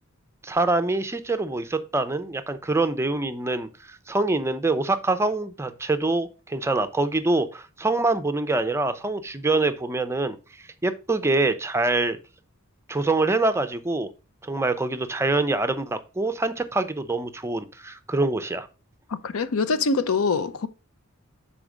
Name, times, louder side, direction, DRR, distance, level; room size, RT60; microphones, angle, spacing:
voice 1, 0.4-10.4 10.8-12.2 12.9-14.1 14.4-18.7, right 2 dB, 10° right, 0.5 m, -25 dB
voice 2, 19.1-20.7, left 4 dB, 75° left, 0.6 m, -24 dB
6.0 x 4.3 x 5.0 m
head